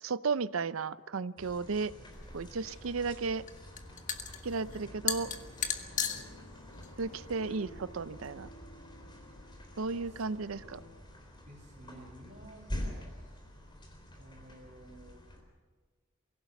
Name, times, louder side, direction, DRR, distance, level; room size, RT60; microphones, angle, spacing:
voice 1, 0.0-1.9 2.3-3.4 4.4-5.3 7.0-8.5 9.8-10.8, right 4 dB, 85° right, 15 dB, 0.6 m, -34 dB
sound 1, 1.4-15.4, left 1 dB, 25° left, 4.0 m, -47 dB
Stirring in coffee, 2.1-8.3, left 7 dB, 40° left, 1.4 m, -38 dB
sound 2, 4.6-11.0, left 1 dB, 60° left, 2.3 m, -55 dB
voice 2, 5.7-6.4 10.1-10.2 10.6-10.7 11.4-13.2 14.2-15.2, right 1 dB, 40° right, 0 dB, 5.1 m, -53 dB
23.5 x 16.5 x 7.1 m, 1.4 s
head